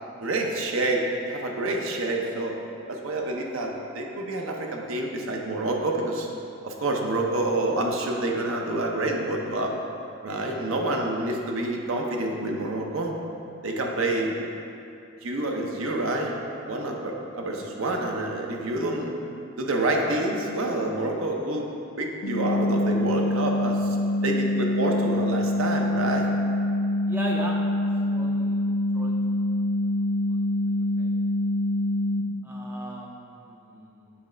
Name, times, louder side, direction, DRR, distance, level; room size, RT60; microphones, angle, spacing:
voice 1, 0.2-2.6 2.9-6.3 6.6-9.7 10.2-13.2 13.6-14.3 15.2-16.3 16.7-19.1 19.6-21.7 22.0-23.8 24.2-26.3, right 2 dB, 65° right, 1 dB, 0.7 m, -27 dB
sound 1, 22.2-32.2, left 1 dB, 80° left, 0.7 m, -25 dB
voice 2, 27.1-27.6 28.0-28.6 28.9-29.4 30.3-30.4 31.0-31.1 32.4-34.1, right 1 dB, 10° right, -2 dB, 0.4 m, -38 dB
7.2 x 3.2 x 5.0 m, 2.7 s
head